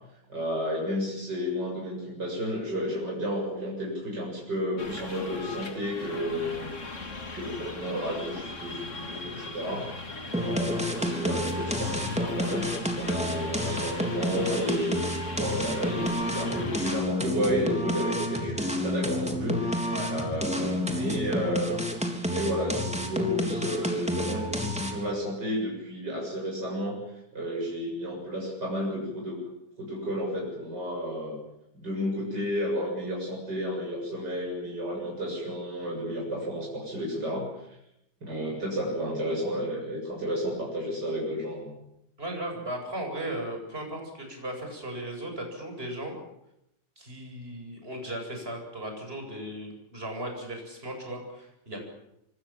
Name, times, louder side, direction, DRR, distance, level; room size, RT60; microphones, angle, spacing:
voice 1, 0.3-6.7 7.3-9.8 10.3-15.0 15.3-21.9 22.2-29.4 29.8-31.4 31.7-37.8 38.2-41.7, equal, 80° right, -2 dB, 8.0 m, -32 dB
sound 1, 4.8-17.0, left 3 dB, 45° left, 3.0 m, -39 dB
sound 2, 10.3-25.1, equal, 5° right, 3.5 m, -30 dB
voice 2, 42.2-46.1 47.0-51.9, right 1 dB, 35° right, 3 dB, 8.3 m, -36 dB
25.5 x 25.5 x 7.5 m, 0.82 s
omnidirectional pair, 1.8 m